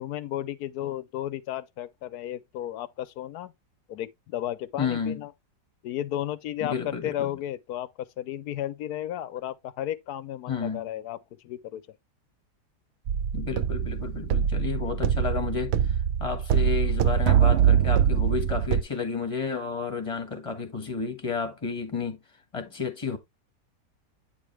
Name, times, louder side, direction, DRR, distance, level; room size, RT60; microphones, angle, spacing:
voice 1, 0.0-3.5 3.9-5.3 5.8-11.2 11.4-11.9, left 12 dB, 70° left, 1.1 m, -33 dB
voice 2, 4.8-5.2 6.6-7.3 10.5-10.9 13.3-22.2 22.5-23.2, left 5 dB, 20° left, 1.4 m, -31 dB
sound 1, 13.1-18.8, right 9 dB, 80° right, 0.6 m, -23 dB
9.1 x 4.9 x 3.1 m
omnidirectional pair, 1.8 m